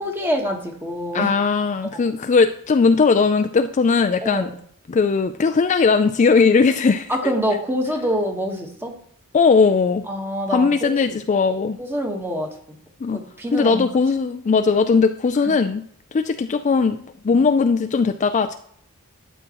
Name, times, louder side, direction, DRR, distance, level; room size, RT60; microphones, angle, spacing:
voice 1, 0.0-1.3 1.9-2.0 4.2-4.6 7.1-8.9 10.1-11.2 11.8-12.8 13.1-13.9, equal, 10° right, 2 dB, 1.3 m, -26 dB
voice 2, 1.1-4.5 4.9-7.1 9.3-10.0 10.5-11.8 13.0-13.2 13.5-15.8 16.1-18.5, left 4 dB, 35° left, 8 dB, 0.3 m, -18 dB
12.5 x 7.4 x 3.0 m, 0.65 s
head